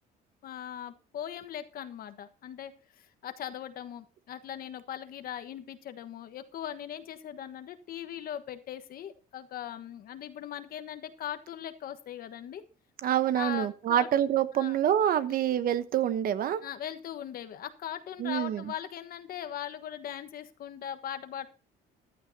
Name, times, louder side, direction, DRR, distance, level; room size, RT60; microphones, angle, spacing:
voice 1, 0.4-12.6 13.3-14.1 14.5-14.8 15.3-15.4 16.6-21.5, left 10 dB, 60° left, 10 dB, 1.3 m, -40 dB
voice 2, 13.0-16.6 18.2-18.6, right 10 dB, 60° right, 13 dB, 1.0 m, -26 dB
14.5 x 11.5 x 2.8 m, 0.36 s
cardioid pair, 110°, 17 cm